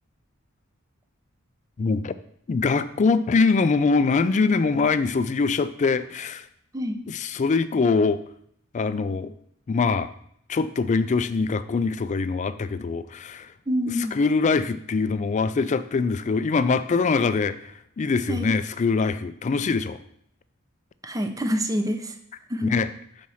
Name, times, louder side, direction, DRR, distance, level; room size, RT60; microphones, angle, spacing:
voice 1, 1.8-2.1 2.5-6.5 7.1-8.2 8.7-9.3 9.7-10.1 10.5-13.5 14.1-20.0 22.7-22.9, left 4 dB, 35° left, 13 dB, 0.3 m, -23 dB
voice 2, 13.7-14.2 18.3-18.5 21.0-22.2 22.5-22.8, equal, 15° right, 7 dB, 0.6 m, -26 dB
5.5 x 4.2 x 6.2 m, 0.69 s
head